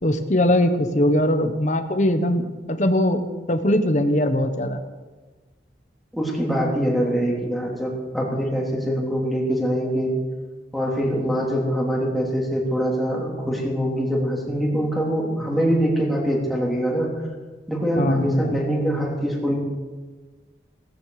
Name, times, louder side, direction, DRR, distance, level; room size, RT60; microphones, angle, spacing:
voice 1, 0.0-3.2 3.5-4.8 18.0-18.5, left 1 dB, 40° left, 7 dB, 1.2 m, -21 dB
voice 2, 6.1-10.2 10.7-17.1 17.7-19.5, equal, ahead, -3 dB, 3.4 m, -23 dB
17.0 x 16.0 x 5.0 m, 1.3 s
head